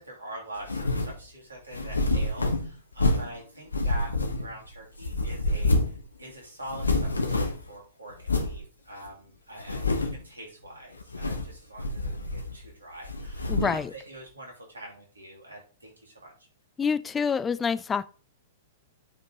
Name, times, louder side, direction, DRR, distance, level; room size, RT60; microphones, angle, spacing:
voice 1, 0.0-4.1 4.4-5.8 6.2-16.3, right 1 dB, 80° right, 2.8 m, -44 dB
sound 1, 0.6-1.2 1.7-3.4 3.7-4.7 5.0-6.0 6.3-6.4 6.6-7.7 8.2-8.6 9.1-9.2 9.6-10.3 11.0-11.5 11.8-12.7 13.0-13.8, left 2 dB, 80° left, 1.0 m, -27 dB
voice 2, 13.5-13.9 16.8-18.1, left 6 dB, 15° left, 0.4 m, -27 dB
10.5 x 5.1 x 2.9 m
figure-of-eight pair, 105°, 0 cm